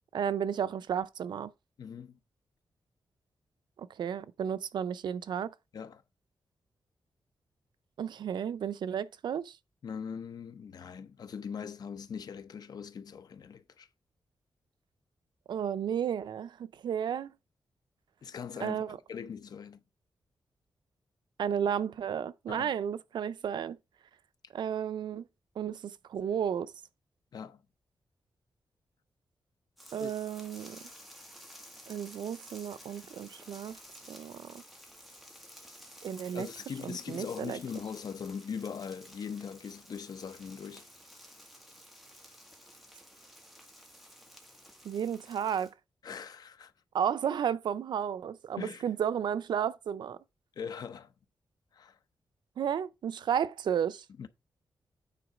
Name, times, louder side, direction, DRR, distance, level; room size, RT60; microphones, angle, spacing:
voice 1, 0.1-1.5 3.8-5.5 8.0-9.6 15.5-16.6 16.8-17.3 18.6-19.0 21.4-23.8 24.5-25.3 25.6-26.7 29.9-30.8 31.9-33.8 34.1-34.6 36.0-36.5 36.8-37.6 44.8-45.7 46.9-50.2 52.6-54.0, right 8 dB, 80° right, 0.5 m, -33 dB
voice 2, 1.8-2.2 5.7-6.0 9.8-13.9 18.2-19.8 22.5-22.7 27.3-27.6 30.0-30.1 36.3-40.9 46.0-46.7 48.6-48.9 50.6-51.1 51.7-52.0 54.2-54.3, left 6 dB, 60° left, 0.7 m, -41 dB
sound 1, 29.8-45.7, equal, ahead, 1.7 m, -53 dB
9.1 x 3.9 x 4.9 m
wide cardioid pair, 150°, 8 cm